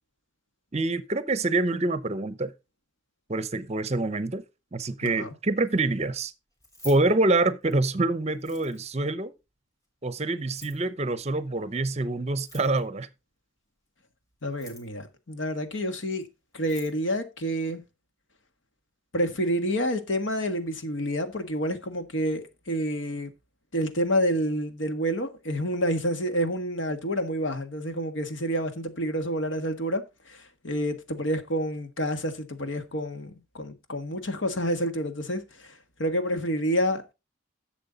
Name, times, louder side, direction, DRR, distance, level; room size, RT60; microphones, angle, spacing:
voice 1, 0.7-2.5 3.3-4.4 4.7-6.3 6.8-9.3 10.0-13.1, right 2 dB, 35° right, 0.7 m, -26 dB
Keys jangling, 6.5-7.9 8.3-9.0 10.4-10.9 12.3-13.0 14.4-15.0 16.2-16.3 16.5-17.0, left 1 dB, 15° left, 3.3 m, -48 dB
voice 2, 14.4-16.2 16.5-17.8 19.1-23.3 23.7-37.1, equal, 65° left, 1.6 m, -29 dB
11.0 x 7.3 x 3.9 m
head